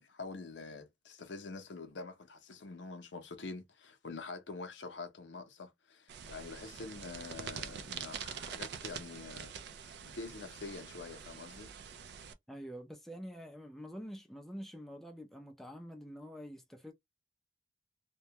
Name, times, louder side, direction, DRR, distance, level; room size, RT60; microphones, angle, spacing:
voice 1, 0.0-9.5 10.0-11.7, left 3 dB, 75° left, 0.6 m, -46 dB
sound 1, 6.1-12.3, right 7 dB, 65° right, 0.4 m, -45 dB
voice 2, 12.5-16.9, equal, ahead, 0.4 m, -46 dB
2.2 x 2.1 x 2.7 m
head